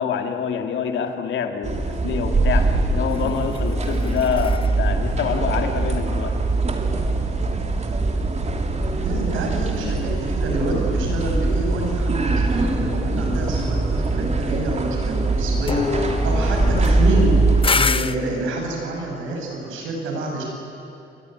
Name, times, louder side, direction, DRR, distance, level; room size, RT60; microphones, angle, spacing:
voice 1, 0.0-6.4, left 7 dB, 70° left, 5 dB, 2.4 m, -26 dB
sound 1, 1.6-17.7, right 2 dB, 35° right, 2.9 m, -22 dB
sound 2, 3.1-6.6 15.7-18.2, left 5 dB, 25° left, 0.8 m, -28 dB
voice 2, 9.0-17.3 17.7-20.4, right 2 dB, 85° right, 0 dB, 8.0 m, -27 dB
29.0 x 21.5 x 9.5 m, 2.7 s
cardioid pair, 90°, 20 cm